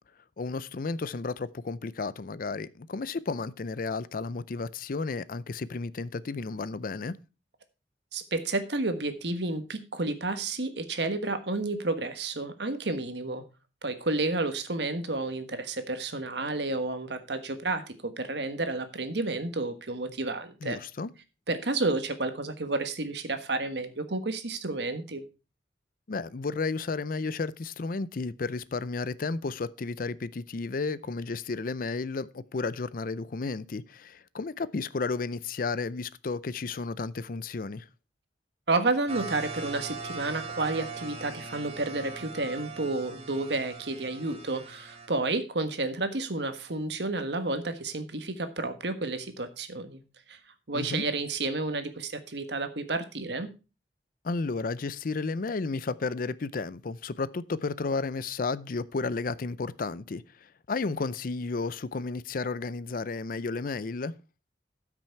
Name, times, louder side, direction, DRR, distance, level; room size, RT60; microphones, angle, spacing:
voice 1, 0.4-7.2 20.6-21.1 26.1-37.9 50.7-51.1 54.2-60.2 60.7-64.1, left 4 dB, 55° left, 0.5 m, -32 dB
voice 2, 8.1-13.4 13.8-20.8 21.5-25.2 38.7-50.0 50.3-50.4 50.7-53.5, right 2 dB, 75° right, 1.4 m, -31 dB
sound 1, 39.1-45.1, right 4 dB, 35° right, 1.7 m, -40 dB
13.0 x 6.1 x 4.5 m
head